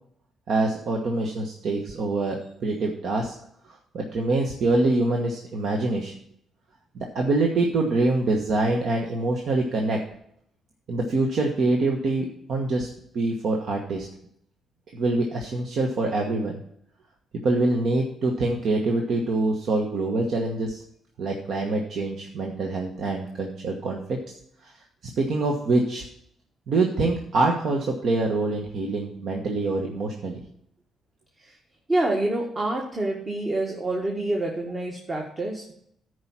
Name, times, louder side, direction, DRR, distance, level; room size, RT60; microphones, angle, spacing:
voice 1, 0.5-3.3 3.6-6.1 6.9-10.0 10.9-12.9 13.1-14.1 14.9-16.6 17.4-20.8 21.2-24.2 24.6-24.7 25.2-26.0 26.7-30.4, right 2 dB, 65° right, 1 dB, 1.3 m, -25 dB
voice 2, 31.9-35.7, right 2 dB, 30° right, 0 dB, 1.6 m, -27 dB
10.5 x 4.8 x 7.3 m, 0.70 s
cardioid pair, 90°, 0 cm